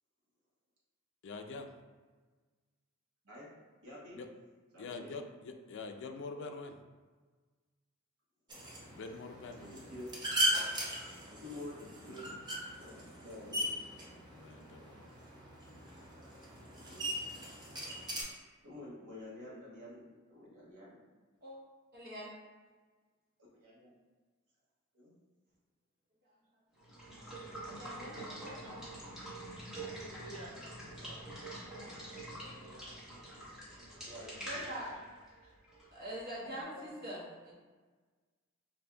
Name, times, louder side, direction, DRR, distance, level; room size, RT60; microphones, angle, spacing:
voice 1, 1.2-1.7 4.1-4.3 4.8-6.8 8.9-9.7 12.1-12.4 14.3-15.1, left 3 dB, 60° left, 5 dB, 0.4 m, -45 dB
voice 2, 3.8-4.2 4.7-5.1 9.6-10.1 11.3-12.3 12.8-13.7 16.7-17.2 18.2-18.3 18.6-21.0 23.5-23.9 24.9-25.1 30.9-32.0 34.0-34.3 34.6-34.7 36.5-36.9, left 1 dB, 90° right, -5 dB, 1.1 m, -50 dB
sound 1, 8.5-18.2, right 1 dB, 20° right, 0.6 m, -38 dB
voice 3, 21.9-22.3 27.6-28.8 34.4-34.9 35.9-37.6, right 1 dB, 45° right, -6 dB, 1.1 m, -44 dB
Water / Water tap faucet / Liquid, 26.8-36.4, right 1 dB, 5° right, 1.0 m, -46 dB
voice 4, 28.1-28.8 29.7-33.0 34.1-35.1 35.4-35.5, right 1 dB, 65° right, -6 dB, 1.2 m, -54 dB
5.0 x 2.5 x 2.2 m, 1.4 s
head